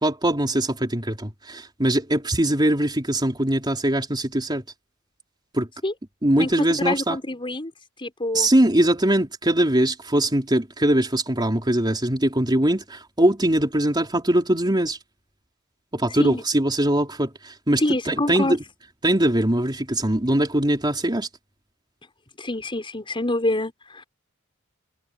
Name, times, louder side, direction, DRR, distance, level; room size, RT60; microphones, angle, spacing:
voice 1, 0.0-4.6 5.5-5.7 6.2-7.2 8.3-15.0 15.9-18.6 19.0-21.3, right 1 dB, 20° right, 3.8 m, -21 dB
voice 2, 6.8-7.7 8.0-8.5 16.2-16.4 17.8-18.6 22.4-24.0, left 1 dB, 25° left, 5.8 m, -26 dB
head